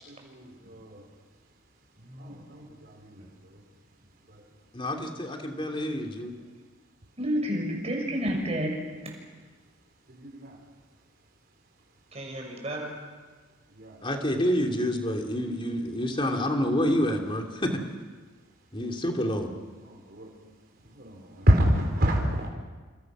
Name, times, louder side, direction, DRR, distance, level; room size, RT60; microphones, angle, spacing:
voice 1, 0.3-1.0 2.2-3.1 10.1-10.5 13.7-14.0 19.9-20.3 21.0-22.5, equal, 50° right, 0 dB, 4.7 m, -27 dB
voice 2, 2.0-2.5 3.2-3.3 7.2-9.2 12.1-13.0, equal, 30° right, 2 dB, 6.2 m, -31 dB
voice 3, 4.7-6.3 14.0-17.8 18.7-19.5, equal, 25° left, 3 dB, 3.0 m, -28 dB
28.5 x 27.0 x 6.3 m, 1.4 s
head